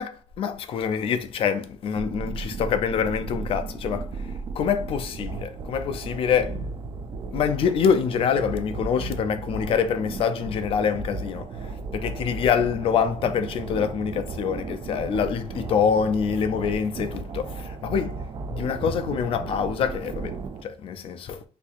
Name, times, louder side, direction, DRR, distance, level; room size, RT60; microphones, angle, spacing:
voice 1, 0.4-6.6 7.3-18.2 18.5-21.4, left 7 dB, 45° left, 0.4 m, -25 dB
sound 1, 1.9-20.6, right 4 dB, 35° right, 0.4 m, -35 dB
4.1 x 2.7 x 2.4 m
cardioid pair, 145°, 13 cm